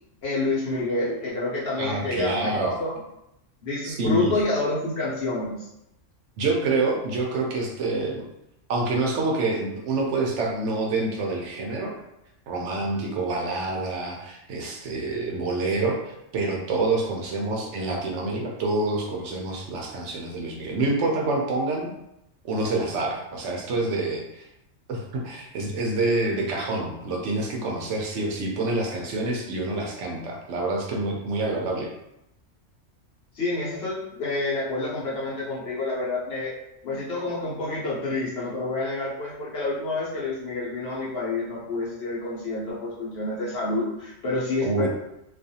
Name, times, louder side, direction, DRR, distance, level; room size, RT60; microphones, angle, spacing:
voice 1, 0.2-2.5 2.8-2.9 3.6-5.7 33.3-36.6 36.8-44.9, left 2 dB, 60° left, -6 dB, 0.9 m, -28 dB
voice 2, 1.8-2.8 3.8-4.4 6.4-8.3 8.7-11.9 12.5-21.9 22.4-24.5 24.9-31.9 36.9-37.0 44.6-44.9, right 2 dB, 70° right, 0 dB, 0.8 m, -27 dB
2.4 x 2.4 x 2.7 m, 0.85 s
omnidirectional pair, 1.3 m